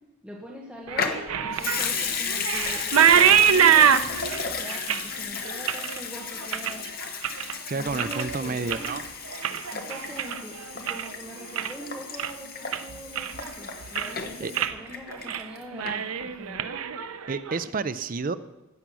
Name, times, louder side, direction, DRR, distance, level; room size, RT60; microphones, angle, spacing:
voice 1, 0.2-6.9 7.7-9.1 9.7-16.7, equal, 5° right, -3 dB, 1.2 m, -42 dB
Water tap faucet / Sink (filling or washing) / Liquid, 0.9-15.6 15.9-16.0, left 6 dB, 45° left, 1.1 m, -34 dB
sound 1, 0.9-7.5 7.9-8.4 8.6-11.1 11.4-11.9 12.2-12.3 12.7-13.5 13.8-14.2 14.5-14.8 15.1-15.4 15.7-17.6, right 8 dB, 85° right, 0.6 m, -24 dB
voice 2, 7.7-9.0 14.4-14.5 17.3-18.4, right 4 dB, 40° right, 13 dB, 0.5 m, -30 dB
15.0 x 8.2 x 6.2 m, 1.0 s
head